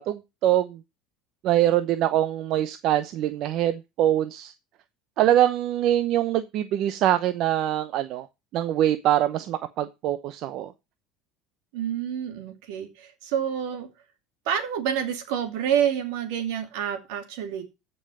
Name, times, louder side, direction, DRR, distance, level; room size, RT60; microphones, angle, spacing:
voice 1, 0.1-0.8 1.4-4.5 5.2-8.3 8.5-10.7, right 12 dB, 55° right, 11 dB, 0.8 m, -23 dB
voice 2, 11.7-13.9 14.5-17.6, right 9 dB, 80° right, 7 dB, 2.6 m, -28 dB
15.0 x 5.5 x 5.5 m, 0.26 s
supercardioid pair, 115°, 0 cm